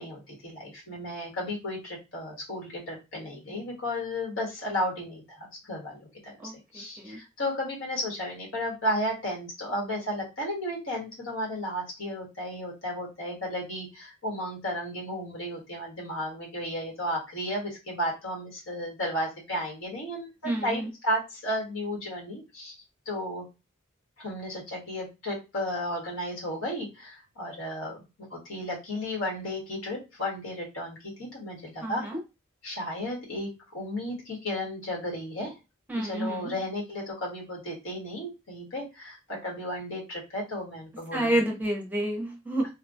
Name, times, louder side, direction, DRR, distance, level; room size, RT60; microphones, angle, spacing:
voice 1, 0.0-6.4 6.7-20.3 20.6-22.7 23.0-23.4 24.2-28.0 28.3-32.0 32.6-35.5 35.9-41.6, equal, 75° left, -2 dB, 1.5 m, -33 dB
voice 2, 6.4-7.2 20.4-20.9 31.8-32.2 35.9-36.6 41.1-42.6, right 1 dB, 10° right, 0 dB, 0.6 m, -29 dB
3.1 x 2.2 x 2.6 m, 0.26 s
head